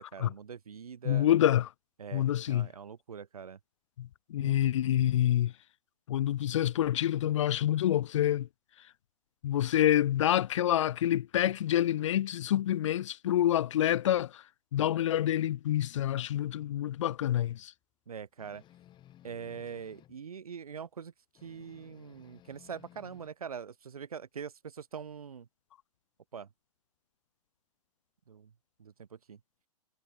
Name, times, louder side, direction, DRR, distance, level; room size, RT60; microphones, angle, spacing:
voice 1, 0.0-1.3 2.0-3.6 4.4-4.8 18.1-18.6 19.2-21.1 21.4-25.5 26.3-26.5 28.3-28.5 28.8-29.4, right 7 dB, 65° right, 5.9 m, -43 dB
voice 2, 1.1-1.7 2.1-2.7 4.0-5.5 6.1-8.5 9.4-14.4 14.7-17.7, left 12 dB, 50° left, 0.7 m, -27 dB
sound 1, 18.4-20.2 21.4-23.3, left 12 dB, 25° left, 7.7 m, -58 dB
figure-of-eight pair, 110°, 20 cm